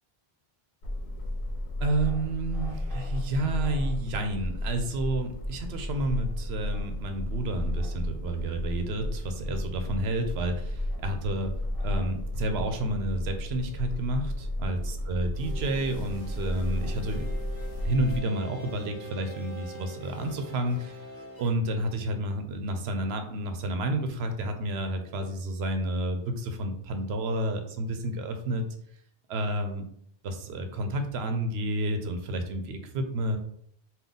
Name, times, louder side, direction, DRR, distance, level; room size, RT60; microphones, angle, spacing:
sound 1, 0.8-18.2, left 1 dB, 65° left, 0.9 m, -33 dB
voice 1, 1.8-11.5 11.8-17.3 17.8-21.1 21.4-28.6 29.3-29.9 30.2-33.4, right 1 dB, 85° right, 6 dB, 0.9 m, -30 dB
sound 2, 15.4-21.5, equal, 15° left, 1.5 m, -43 dB
3.9 x 2.3 x 3.6 m, 0.67 s
omnidirectional pair, 1.1 m